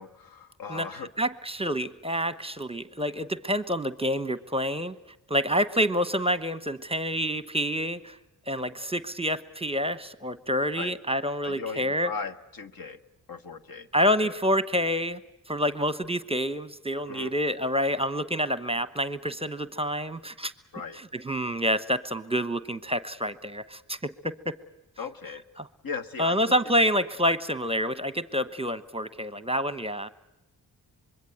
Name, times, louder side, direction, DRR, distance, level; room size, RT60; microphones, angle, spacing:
voice 1, 0.0-1.1 10.7-10.9 11.4-13.0 13.3-13.9 14.2-14.3 17.1-17.3 20.7-21.0 25.0-25.4 25.8-26.3, left 5 dB, 60° left, 10 dB, 1.6 m, -37 dB
voice 2, 0.7-5.0 5.3-8.2 8.5-12.1 13.9-15.2 15.5-20.5 20.9-24.6 25.6-25.7 26.2-30.1, equal, 15° right, 13 dB, 1.1 m, -28 dB
25.5 x 22.5 x 7.9 m, 0.93 s
cardioid pair, 65°, 39 cm